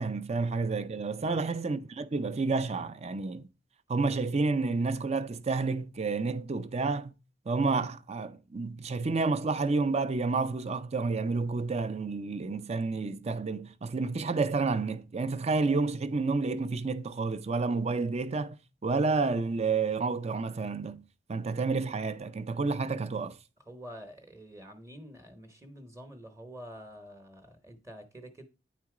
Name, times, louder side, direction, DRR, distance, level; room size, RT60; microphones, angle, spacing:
voice 1, 0.0-3.4 3.9-7.1 7.5-18.5 18.8-21.0 21.3-23.4, right 3 dB, 35° right, 0.5 m, -30 dB
voice 2, 23.7-28.5, equal, 15° right, 0.9 m, -47 dB
9.3 x 4.1 x 4.8 m
head